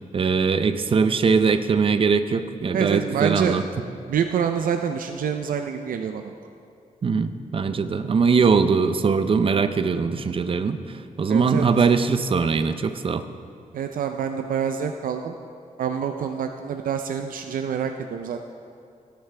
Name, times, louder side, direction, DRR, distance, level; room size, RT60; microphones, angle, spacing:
voice 1, 0.1-3.6 7.0-10.8 11.2-13.2, right 5 dB, 40° right, 10 dB, 0.5 m, -21 dB
voice 2, 2.7-3.6 4.1-6.3 11.3-11.7 13.7-15.4 15.8-18.4, right 7 dB, 85° right, 6 dB, 0.5 m, -26 dB
17.0 x 10.0 x 3.3 m, 2.4 s
wide cardioid pair, 150°, 14 cm